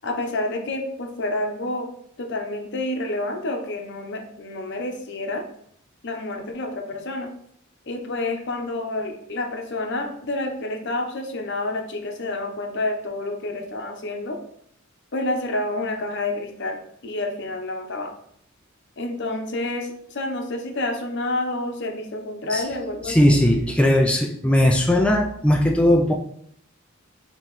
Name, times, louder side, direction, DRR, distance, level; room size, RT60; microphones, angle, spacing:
voice 1, 0.0-1.9 2.2-5.4 6.0-7.3 7.8-14.4 15.1-16.8 17.0-18.1 19.0-23.4, left 2 dB, 60° left, 3 dB, 0.8 m, -29 dB
voice 2, 23.0-26.1, left 1 dB, 5° left, 1 dB, 0.3 m, -18 dB
5.6 x 2.9 x 3.1 m, 0.68 s
head